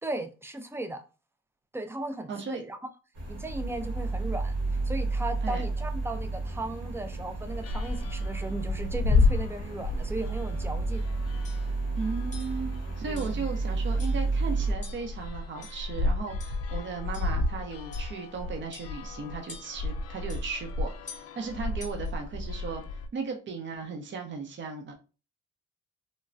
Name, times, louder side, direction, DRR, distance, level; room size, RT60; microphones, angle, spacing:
voice 1, 0.0-1.0 1.7-2.8 3.3-4.5 4.8-11.0 13.1-13.5, right 2 dB, 10° right, 0.4 m, -36 dB
voice 2, 2.3-2.6 5.4-5.6 12.0-22.8 23.1-24.9, right 5 dB, 40° right, 0.7 m, -36 dB
sound 1, 3.2-14.7, right 3 dB, 75° right, 1.6 m, -31 dB
sound 2, 7.5-23.1, left 3 dB, 50° left, 0.4 m, -32 dB
sound 3, 10.9-11.1 11.4-11.7 12.3-12.6 13.2-13.5 14.0-14.3 14.8-15.2 15.6-16.0 16.4-16.6 17.1-17.4 17.9-18.2 18.7-19.1 19.5-19.9 20.3-20.5 21.1-21.3 21.8-22.1, left 4 dB, 25° left, 0.8 m, -48 dB
3.1 x 2.2 x 2.5 m
cardioid pair, 90°, 30 cm